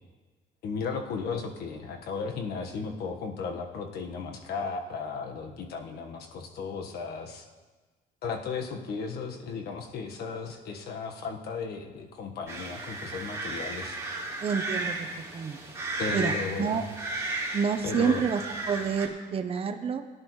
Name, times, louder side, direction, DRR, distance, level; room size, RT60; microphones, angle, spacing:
voice 1, 0.6-7.5 8.2-14.0 16.0-16.8 17.8-18.2, left 5 dB, 70° left, 4 dB, 1.4 m, -35 dB
sound 1, 12.5-19.1, right 2 dB, 15° right, 3.5 m, -34 dB
voice 2, 14.4-15.1 15.3-15.6 16.1-16.8 17.5-18.4 18.7-20.0, right 6 dB, 35° right, 6 dB, 0.7 m, -28 dB
18.5 x 10.5 x 3.1 m, 1.3 s
cardioid pair, 110°, 17 cm